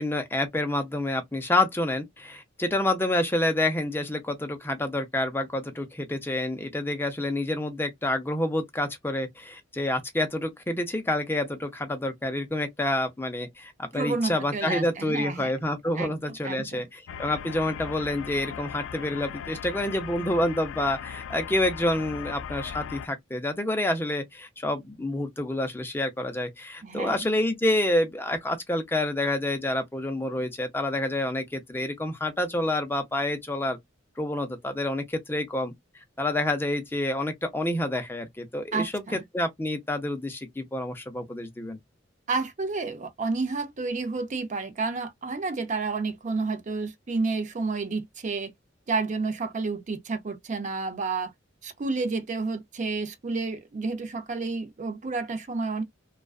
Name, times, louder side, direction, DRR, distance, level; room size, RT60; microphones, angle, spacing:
voice 1, 0.0-33.8 34.2-35.7 36.2-41.8, left 1 dB, 10° left, 0.5 m, -28 dB
voice 2, 13.9-15.5 16.0-16.1 16.4-16.8 26.8-27.2 38.7-39.2 42.3-48.5 48.9-51.3 51.6-55.8, right 3 dB, 40° right, 0.5 m, -30 dB
sound 1, 17.1-23.1, left 8 dB, 75° left, 0.3 m, -38 dB
2.4 x 2.2 x 2.3 m
head